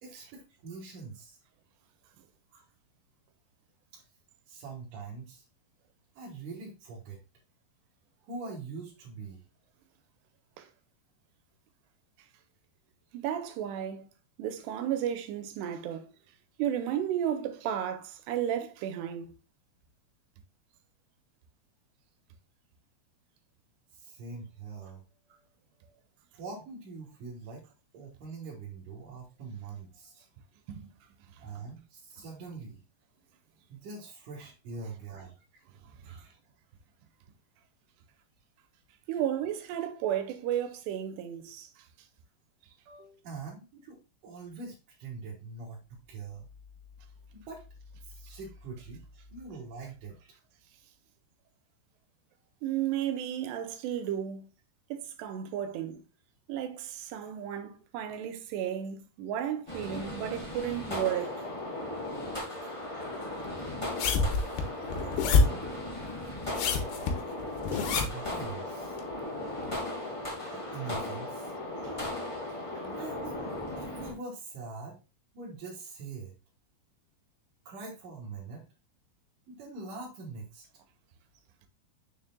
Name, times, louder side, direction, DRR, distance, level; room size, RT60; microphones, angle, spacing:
voice 1, 0.0-1.4 2.5-2.6 3.9-4.0 4.5-5.4 6.2-7.2 8.2-9.4 23.9-25.4 26.3-27.6 27.9-30.3 31.4-32.8 33.7-35.4 36.0-36.4 42.9-46.5 47.3-47.6 48.0-50.3 67.7-69.0 70.5-71.5 72.8-73.4 73.8-75.0 75.3-76.3 77.7-78.6 79.5-80.6, right 4 dB, 60° right, 2.6 m, -43 dB
voice 2, 13.1-14.1 14.4-16.1 16.6-19.3 30.7-30.9 39.1-41.7 52.6-54.5 54.9-56.0 56.5-61.4, right 10 dB, 90° right, 2.9 m, -33 dB
sound 1, 59.7-74.1, left 1 dB, 25° left, 0.6 m, -37 dB
sound 2, 64.0-65.7 66.4-68.3 69.0-69.1, left 4 dB, 75° left, 2.8 m, -26 dB
6.6 x 6.5 x 2.2 m
omnidirectional pair, 4.8 m